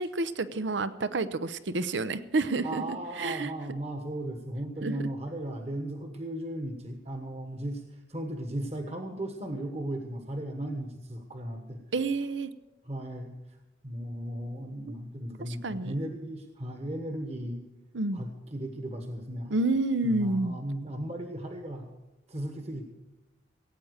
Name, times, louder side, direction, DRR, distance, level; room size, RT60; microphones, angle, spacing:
voice 1, 0.0-3.5 4.8-4.9 11.9-12.5 15.5-15.9 17.9-18.2 19.5-20.5, right 2 dB, 85° right, 14 dB, 0.7 m, -29 dB
voice 2, 2.6-11.8 12.8-13.3 13.8-17.6 18.1-19.6 20.0-21.9 22.3-22.8, right 1 dB, 35° right, 5 dB, 1.3 m, -36 dB
17.0 x 8.8 x 6.5 m, 1.0 s
head